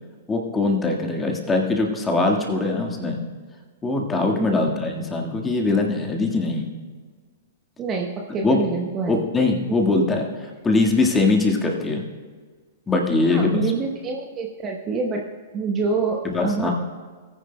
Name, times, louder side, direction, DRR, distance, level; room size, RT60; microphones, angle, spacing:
voice 1, 0.3-3.2 3.8-6.7 8.4-8.6 9.1-10.3 10.6-12.0 12.9-13.6 16.2-16.7, left 3 dB, 15° left, 1 dB, 1.6 m, -21 dB
voice 2, 4.4-4.7 7.8-9.2 13.3-15.2 15.5-16.7, right 4 dB, 25° right, 1 dB, 0.9 m, -26 dB
19.0 x 9.9 x 2.2 m, 1.5 s
figure-of-eight pair, 105°, 0 cm